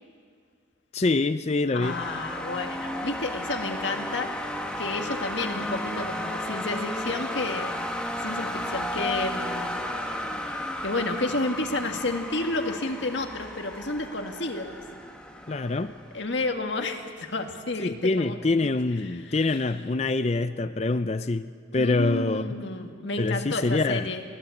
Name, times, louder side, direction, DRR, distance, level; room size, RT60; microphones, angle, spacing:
voice 1, 0.9-2.0 15.5-15.9 17.8-22.6 23.2-24.1, left 3 dB, 35° left, 12 dB, 0.5 m, -25 dB
voice 2, 1.7-4.3 4.8-7.7 8.2-9.8 10.8-14.8 16.1-18.4 19.0-19.6 21.7-24.2, left 2 dB, 65° left, 4 dB, 1.8 m, -31 dB
sound 1, 1.8-16.7, left 1 dB, 5° left, 1.4 m, -33 dB
23.0 x 17.0 x 8.5 m, 2.1 s
head